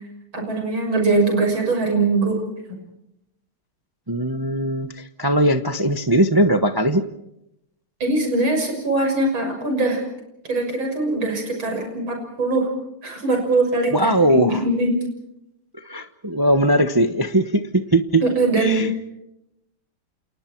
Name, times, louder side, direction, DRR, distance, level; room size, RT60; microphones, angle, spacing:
voice 1, 0.3-2.4 8.0-10.0 10.4-12.7 13.0-15.0 18.2-19.0, right 2 dB, 65° right, 3 dB, 7.2 m, -21 dB
voice 2, 4.1-7.0 13.9-14.6 15.8-18.2 18.6-19.0, right 1 dB, 25° right, 9 dB, 0.4 m, -20 dB
30.0 x 28.0 x 4.6 m, 0.83 s
omnidirectional pair, 2.3 m